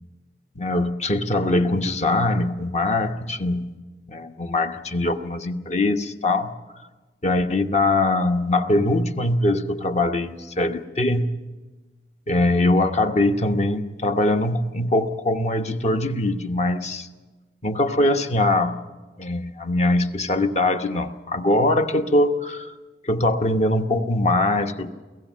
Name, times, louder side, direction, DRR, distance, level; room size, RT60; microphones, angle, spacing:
voice 1, 0.6-3.6 4.1-6.5 7.2-11.3 12.3-17.1 17.6-18.8 19.2-22.7 23.0-24.9, left 2 dB, 40° left, 7 dB, 1.0 m, -22 dB
23.0 x 16.5 x 7.4 m, 1.3 s
head